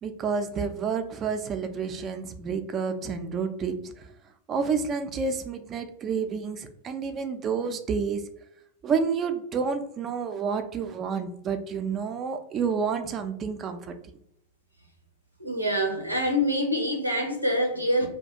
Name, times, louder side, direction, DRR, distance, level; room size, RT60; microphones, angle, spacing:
voice 1, 0.0-4.1 4.5-8.2 8.8-13.9, right 5 dB, 30° right, 7 dB, 0.4 m, -29 dB
voice 2, 15.4-18.1, equal, 90° right, 2 dB, 0.6 m, -25 dB
2.3 x 2.2 x 2.7 m, 0.73 s
figure-of-eight pair, 90°, 0 cm